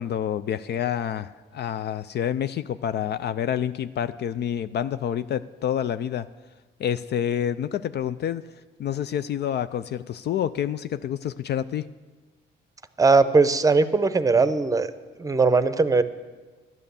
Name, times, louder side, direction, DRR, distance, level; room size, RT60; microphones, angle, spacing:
voice 1, 0.0-6.3 6.8-8.5 8.8-11.9, left 9 dB, 55° left, 13 dB, 0.4 m, -28 dB
voice 2, 13.0-14.9 15.2-16.0, right 4 dB, 15° right, 12 dB, 0.7 m, -19 dB
12.0 x 9.0 x 7.0 m, 1.3 s
cardioid pair, 90°, 20 cm